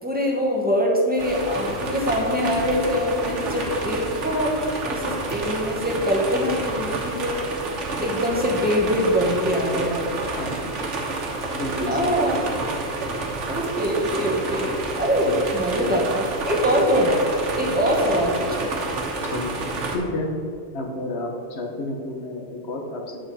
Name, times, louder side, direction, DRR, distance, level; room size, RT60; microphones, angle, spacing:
voice 1, 0.0-4.5 4.8-7.4 8.0-10.1 11.9-12.5 13.5-17.2 17.5-18.7, equal, 10° right, -2 dB, 1.3 m, -23 dB
sound 1, 1.2-20.0, right 3 dB, 90° right, 1.5 m, -29 dB
voice 2, 10.4-11.0 11.5-12.2 19.3-19.5 19.9-20.3 20.7-23.2, left 1 dB, 65° left, 2 dB, 1.3 m, -31 dB
9.4 x 6.2 x 4.2 m, 2.4 s
omnidirectional pair, 1.2 m